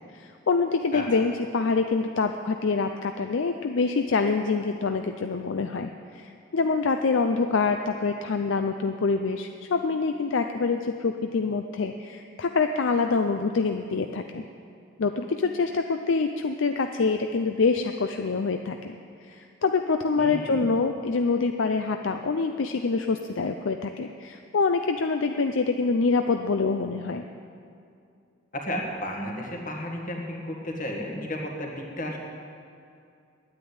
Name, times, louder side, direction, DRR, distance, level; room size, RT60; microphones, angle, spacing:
voice 1, 0.1-14.4 15.0-19.0 19.3-27.2, left 4 dB, 65° left, 6 dB, 0.5 m, -26 dB
voice 2, 20.2-20.7 28.5-32.2, left 1 dB, 40° left, 0 dB, 1.9 m, -33 dB
10.0 x 9.6 x 9.5 m, 2.4 s
head